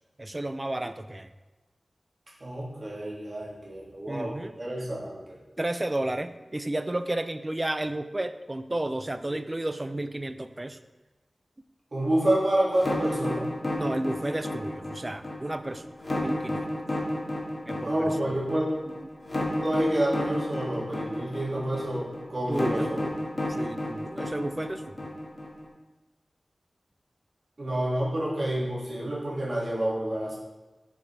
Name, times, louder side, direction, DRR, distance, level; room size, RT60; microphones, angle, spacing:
voice 1, 0.2-1.3 4.1-4.5 5.6-10.8 13.8-15.9 16.2-16.7 17.7-17.9 22.5-22.9 23.5-24.8, right 1 dB, 25° right, 10 dB, 0.4 m, -32 dB
voice 2, 2.4-5.4 11.9-13.5 17.8-18.7 19.6-23.1 27.6-30.4, right 1 dB, 50° right, -6 dB, 2.0 m, -28 dB
sound 1, 12.7-25.7, left 1 dB, 40° left, 1.4 m, -31 dB
7.1 x 4.6 x 3.3 m, 1.2 s
wide cardioid pair, 65°, 0 cm